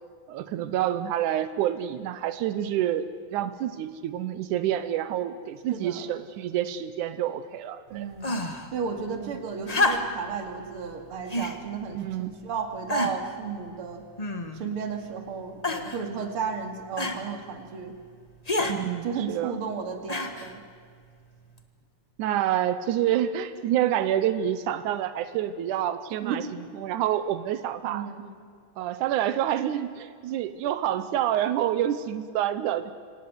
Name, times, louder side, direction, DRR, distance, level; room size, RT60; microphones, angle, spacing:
voice 1, 0.3-8.1 9.2-9.3 11.9-12.3 18.7-19.6 22.2-28.1 28.8-32.9, right 11 dB, 90° right, 12 dB, 2.4 m, -28 dB
voice 2, 5.7-6.1 7.9-14.0 14.5-18.0 18.6-20.6 26.2-26.4 27.8-28.3, right 6 dB, 50° right, 6 dB, 2.8 m, -34 dB
sound 1, 8.2-8.7 9.7-10.3 11.3-11.6 12.3-12.4 12.9-13.3 14.2-14.7 15.6-16.0 17.0-17.2 18.5-18.8 20.1-20.5 21.6-21.7, left 2 dB, 70° left, 0.3 m, -28 dB
26.0 x 17.5 x 9.7 m, 2.1 s
omnidirectional pair, 3.4 m